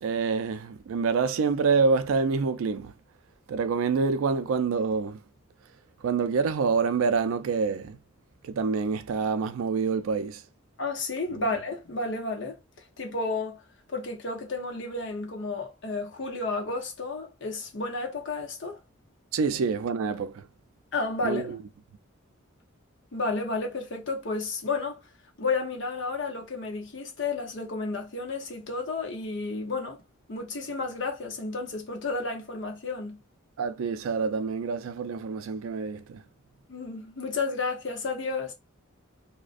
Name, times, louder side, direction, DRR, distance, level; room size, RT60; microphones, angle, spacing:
voice 1, 0.0-2.9 3.5-5.2 6.0-8.0 8.4-10.4 19.3-20.5 21.2-21.6 33.6-36.2, right 5 dB, 85° right, 0.3 m, -27 dB
voice 2, 10.8-12.6 13.0-13.6 13.9-18.8 20.9-21.5 23.1-25.0 25.4-30.0 30.3-33.2 36.7-38.5, left 3 dB, 60° left, 0.7 m, -32 dB
2.4 x 2.1 x 2.4 m
head